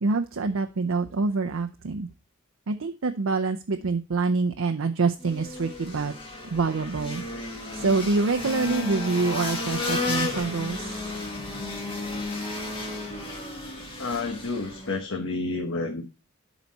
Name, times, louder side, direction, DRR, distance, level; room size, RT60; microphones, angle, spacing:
voice 1, 0.0-2.1 2.7-6.1 6.5-7.2 7.7-10.9, right 4 dB, 70° right, 6 dB, 0.6 m, -26 dB
sound 1, 5.2-15.0, left 2 dB, 25° left, 1.9 m, -33 dB
voice 2, 14.0-16.0, left 3 dB, 70° left, 2 dB, 1.1 m, -30 dB
11.5 x 4.1 x 4.1 m, 0.31 s
head